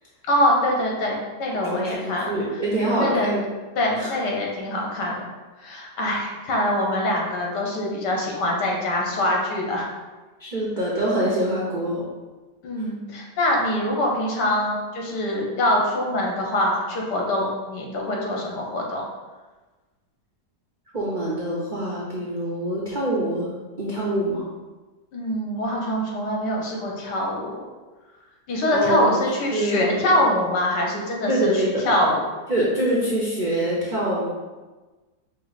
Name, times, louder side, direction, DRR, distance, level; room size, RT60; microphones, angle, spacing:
voice 1, 0.3-2.6 3.0-3.3 3.8-5.3 5.6-9.9 12.6-19.0 25.1-27.6 28.5-32.2, left 1 dB, 80° left, -1 dB, 1.5 m, -24 dB
voice 2, 1.6-3.4 4.0-4.1 10.4-12.1 20.9-23.5 23.8-24.5 28.7-29.2 29.5-30.1 31.3-31.8 32.5-34.3, right 1 dB, 80° right, -5 dB, 0.4 m, -25 dB
5.3 x 2.0 x 3.9 m, 1.2 s
omnidirectional pair, 1.8 m